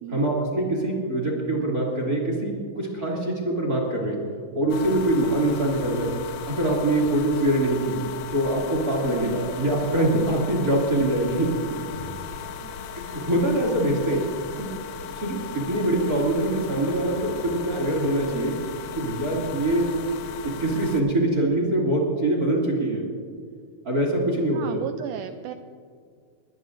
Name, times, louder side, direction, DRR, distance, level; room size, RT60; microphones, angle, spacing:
voice 1, 0.1-4.2 4.5-6.2 6.5-8.0 8.3-11.6 12.9-14.2 14.6-14.7 15.1-18.6 18.9-20.0 20.4-23.1 23.8-24.8, right 1 dB, 30° right, -2 dB, 2.4 m, -24 dB
sound 1, 4.7-21.0, left 7 dB, 90° left, 2.7 m, -37 dB
voice 2, 9.1-9.6 12.6-12.8 14.1-14.4 22.8-23.1 24.5-25.5, right 10 dB, 90° right, 8 dB, 1.8 m, -36 dB
22.5 x 18.5 x 2.6 m, 2.1 s
omnidirectional pair, 4.2 m